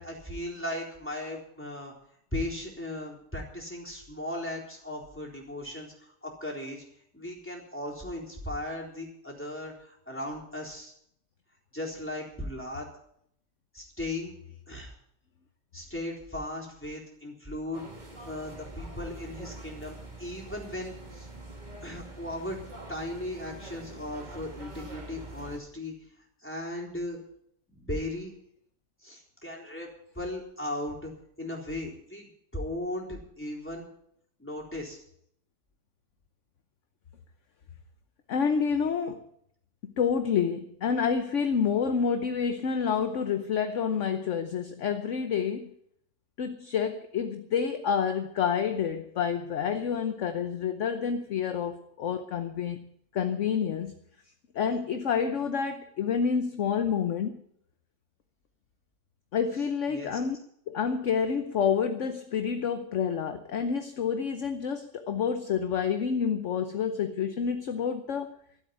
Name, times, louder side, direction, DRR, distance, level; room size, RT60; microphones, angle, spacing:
voice 1, 0.0-1.9 2.3-6.8 7.1-10.9 11.7-12.9 13.7-14.3 14.7-14.9 15.7-17.8 18.2-21.3 21.8-22.6 22.9-25.9 26.4-27.2 27.7-28.3 29.0-31.1 31.4-33.9 34.4-35.0 59.9-60.2, left 1 dB, 5° left, -3 dB, 3.9 m, -37 dB
sound 1, 17.7-25.6, right 2 dB, 25° right, 2.0 m, -45 dB
voice 2, 38.3-39.3 39.8-45.7 46.4-52.9 53.1-53.9 54.5-57.4 59.3-60.4 60.7-68.4, left 7 dB, 55° left, 8 dB, 1.1 m, -28 dB
13.5 x 8.3 x 9.4 m, 0.71 s
omnidirectional pair, 1.8 m